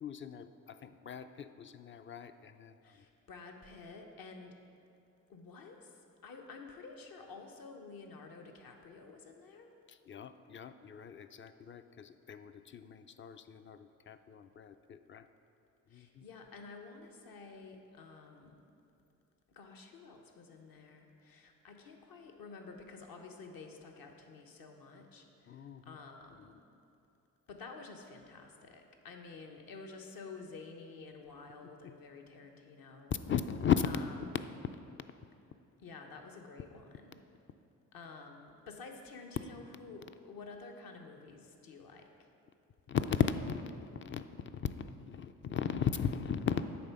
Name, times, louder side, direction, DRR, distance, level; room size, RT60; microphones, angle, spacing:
voice 1, 0.0-3.0 9.9-15.3 15.9-16.3 25.5-26.0 26.4-26.5 31.8-31.9 33.3-33.9 34.3-34.4 42.9-46.6, left 8 dB, 30° left, 10 dB, 0.4 m, -36 dB
voice 2, 2.8-4.6 5.3-9.7 15.9-18.6 19.5-26.6 27.5-33.1 33.8-34.3 35.8-37.2 37.9-42.3, left 4 dB, 60° left, 3 dB, 1.0 m, -51 dB
8.6 x 3.4 x 5.7 m, 2.7 s
hypercardioid pair, 50°, 39 cm